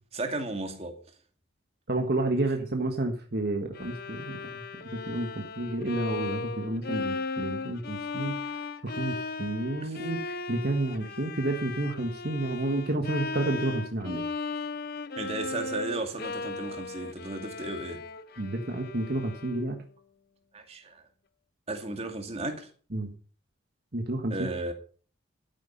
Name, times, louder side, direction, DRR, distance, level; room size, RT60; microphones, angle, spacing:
voice 1, 0.1-1.0 9.8-10.0 15.2-18.0 20.5-21.0 21.7-22.7 24.3-24.7, right 2 dB, 30° right, 2.2 m, -34 dB
voice 2, 1.9-4.6 4.9-8.3 8.8-14.2 18.4-19.8 22.9-23.1 23.9-24.3, right 2 dB, 55° right, 1.5 m, -30 dB
Bowed string instrument, 3.7-19.8, left 3 dB, 50° left, 0.8 m, -37 dB
12.5 x 9.6 x 5.5 m
head